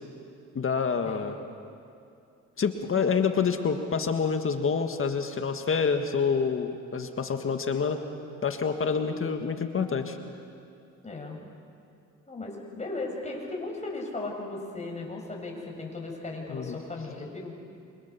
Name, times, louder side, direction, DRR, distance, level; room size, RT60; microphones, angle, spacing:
voice 1, 0.5-1.4 2.6-8.0 8.4-10.2 16.5-16.8, left 5 dB, 45° left, 6 dB, 1.7 m, -27 dB
voice 2, 9.0-9.4 11.0-11.4 12.3-17.5, left 2 dB, 25° left, 0 dB, 6.7 m, -37 dB
28.0 x 25.5 x 7.0 m, 2.5 s
cardioid pair, 90°, 30 cm